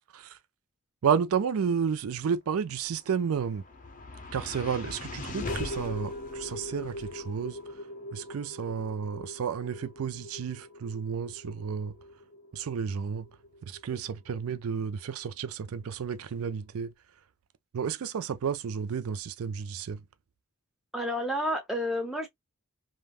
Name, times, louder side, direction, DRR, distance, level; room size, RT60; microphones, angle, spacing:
voice 1, 1.0-3.6 4.3-7.6 8.1-12.0 12.5-13.3 13.6-16.9 17.7-20.0, right 7 dB, 85° right, 0.4 m, -31 dB
sound 1, 2.9-15.2, left 2 dB, 35° left, 0.6 m, -41 dB
voice 2, 20.9-22.3, equal, ahead, 0.9 m, -30 dB
3.3 x 2.2 x 2.4 m
head